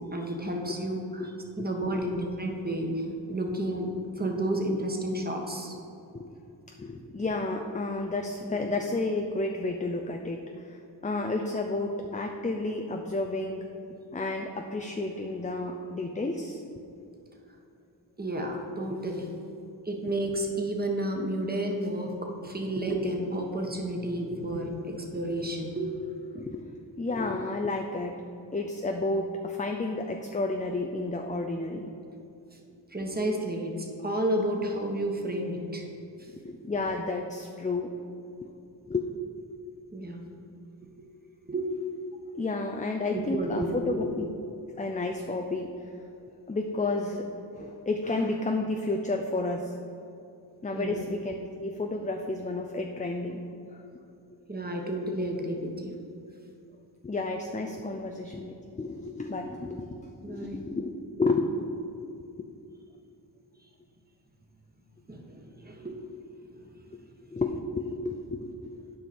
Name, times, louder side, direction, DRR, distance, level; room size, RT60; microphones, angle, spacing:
voice 1, 0.0-5.8 18.2-19.3 19.8-26.0 32.9-35.9 36.2-36.3 39.9-40.2 41.4-41.7 43.1-44.0 50.7-51.1 54.5-56.0 60.2-60.7 65.1-66.0 66.4-66.9, right 1 dB, 20° right, 1 dB, 1.3 m, -31 dB
voice 2, 1.6-2.1 2.8-2.9 6.1-6.3 6.8-13.7 14.1-16.6 26.3-26.6 27.0-28.2 28.5-31.9 36.3-37.9 38.4-38.5 38.9-39.1 42.3-44.2 44.8-45.9 46.5-47.3 47.5-49.7 50.6-53.4 53.7-53.8 57.0-60.9 61.2-61.8 62.4-62.5 67.3-69.0, left 2 dB, 15° left, 3 dB, 0.5 m, -31 dB
9.0 x 5.1 x 4.3 m, 2.7 s
cardioid pair, 40°, 47 cm